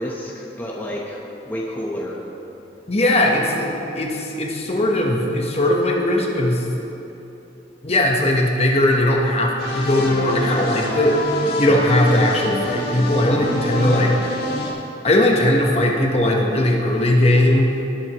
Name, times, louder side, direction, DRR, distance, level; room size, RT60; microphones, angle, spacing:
voice 1, 0.0-2.2 13.8-14.2, equal, 10° left, -3 dB, 1.0 m, -30 dB
voice 2, 2.9-6.7 7.8-11.2 11.6-14.1 15.0-17.8, left 1 dB, 35° left, 0 dB, 1.1 m, -19 dB
sound 1, 9.6-14.7, left 1 dB, 60° left, 1.9 m, -26 dB
19.0 x 7.9 x 3.0 m, 3.0 s
head